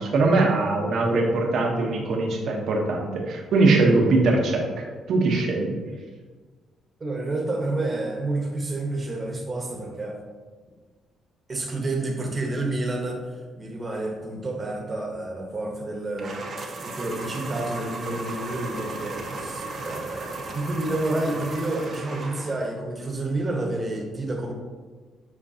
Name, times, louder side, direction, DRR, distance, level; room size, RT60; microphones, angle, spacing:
voice 1, 0.0-5.7, right 3 dB, 70° right, 1 dB, 1.2 m, -22 dB
voice 2, 7.0-10.2 11.5-13.2 13.6-16.4 16.8-24.5, right 2 dB, 30° right, 1 dB, 1.3 m, -29 dB
sound 1, 16.2-22.7, right 2 dB, 50° right, 1.0 m, -35 dB
7.8 x 4.5 x 2.9 m, 1.4 s
cardioid pair, 90°, 0 cm